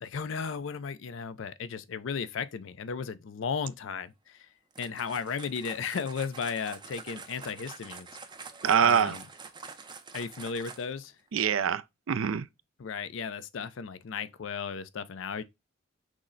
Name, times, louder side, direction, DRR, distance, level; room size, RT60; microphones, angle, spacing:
voice 1, 0.0-4.5 4.8-8.1 8.8-9.2 10.1-11.1 12.8-15.4, left 6 dB, 70° left, 0.4 m, -35 dB
sound 1, 4.7-11.1, right 5 dB, 25° right, 0.5 m, -46 dB
voice 2, 8.6-9.2 11.3-12.5, right 7 dB, 80° right, 0.4 m, -25 dB
6.2 x 2.1 x 3.8 m
head